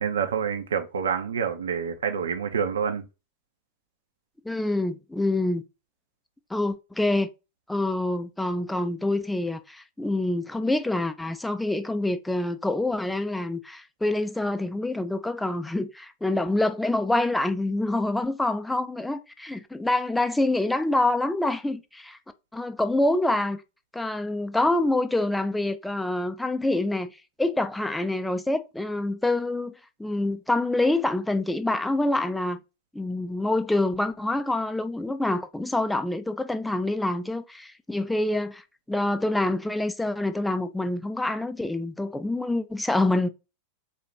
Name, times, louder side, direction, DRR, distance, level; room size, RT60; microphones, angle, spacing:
voice 1, 0.0-3.0, right 7 dB, 65° right, 0.7 m, -27 dB
voice 2, 4.5-5.6 6.5-7.3 7.7-22.2 22.5-23.6 23.9-27.1 27.4-29.7 30.0-32.6 32.9-38.6 38.9-43.3, left 2 dB, 5° left, 0.4 m, -26 dB
4.1 x 2.5 x 4.6 m
figure-of-eight pair, 90°, 0 cm